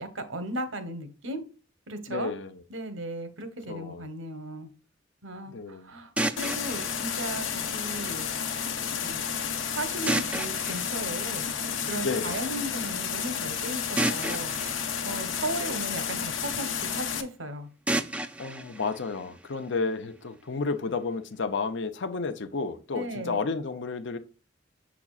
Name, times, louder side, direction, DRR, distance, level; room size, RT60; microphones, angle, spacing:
voice 1, 0.0-1.4 1.9-2.3 2.7-4.7 5.2-7.5 7.7-8.3 9.0-9.2 9.7-11.5 11.8-14.5 15.0-17.7 22.9-23.4, right 1 dB, 85° right, 1.2 m, -36 dB
voice 2, 2.1-2.6 3.7-4.0 5.5-5.9 12.0-12.3 18.4-24.2, left 4 dB, 70° left, 0.7 m, -31 dB
sound 1, 6.2-8.2 10.1-12.0 14.0-16.2 17.9-19.9, right 1 dB, 5° right, 0.4 m, -33 dB
sound 2, 6.4-17.2, left 7 dB, 90° left, 1.0 m, -31 dB
7.1 x 6.0 x 2.4 m
head